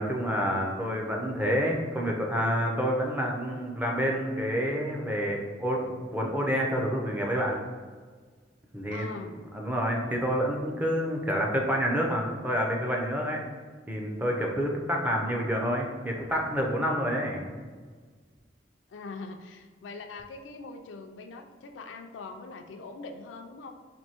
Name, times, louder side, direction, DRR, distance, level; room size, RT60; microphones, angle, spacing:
voice 1, 0.0-7.6 8.7-9.1 9.5-13.4 13.9-17.4, equal, 10° right, -1 dB, 0.4 m, -28 dB
voice 2, 8.9-9.4 18.9-23.7, left 3 dB, 80° left, 5 dB, 0.4 m, -42 dB
4.4 x 2.6 x 2.8 m, 1.5 s
head